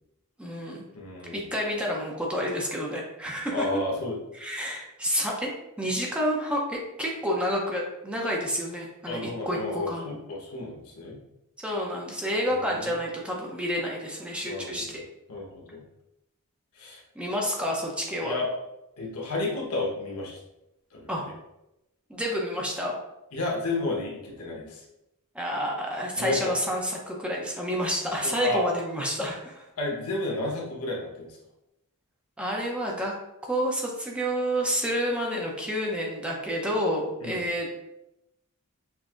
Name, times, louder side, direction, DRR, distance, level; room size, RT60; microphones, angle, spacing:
voice 1, 0.4-0.9 1.3-3.7 4.3-5.5 5.8-10.1 11.6-15.0 17.2-18.4 21.1-21.3 22.1-22.9 25.3-29.6 32.4-33.1 33.4-37.7, equal, 5° right, -2 dB, 0.6 m, -29 dB
voice 2, 0.9-1.4 3.5-4.2 9.1-11.2 12.7-12.9 14.4-15.0 15.3-15.8 16.8-17.0 18.2-18.5 19.0-20.4 20.9-21.3 23.3-24.8 26.2-26.5 28.2-28.6 29.8-31.4 37.2-37.4, left 2 dB, 70° left, -2 dB, 1.1 m, -32 dB
6.0 x 2.6 x 2.4 m, 0.89 s
head